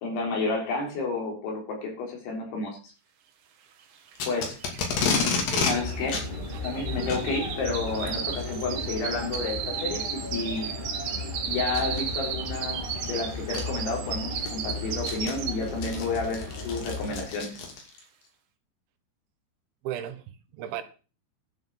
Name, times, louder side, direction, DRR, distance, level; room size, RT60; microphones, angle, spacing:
voice 1, 0.0-2.9 4.3-4.6 5.6-6.2 6.6-10.7 11.4-17.6, left 3 dB, 90° left, 6.1 m, -31 dB
sound 1, 4.1-4.2 4.4-15.8 16.2-16.6 17.0-17.1, right 8 dB, 60° right, 2.3 m, -35 dB
Packing tape duct tape, 4.2-5.7 6.1-6.3 7.0-7.2 8.4-8.6 9.3-9.4 10.1-10.2 11.7-12.0 13.1-13.2 13.5-13.6 14.1-18.0, left 5 dB, 65° left, 4.6 m, -29 dB
sound 2, 5.8-17.3, left 2 dB, 40° left, 0.7 m, -36 dB
voice 2, 19.8-20.8, right 10 dB, 85° right, 3.6 m, -35 dB
12.0 x 6.1 x 7.4 m
omnidirectional pair, 5.2 m